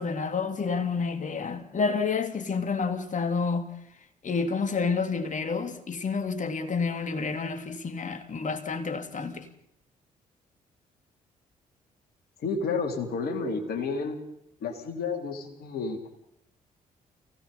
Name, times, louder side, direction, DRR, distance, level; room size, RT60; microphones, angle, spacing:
voice 1, 0.0-3.7 4.2-9.5, left 5 dB, 45° left, 3.1 m, -29 dB
voice 2, 12.4-14.2 14.6-16.1, left 4 dB, 60° left, 4.0 m, -31 dB
29.5 x 17.0 x 5.6 m
figure-of-eight pair, 45°, 18 cm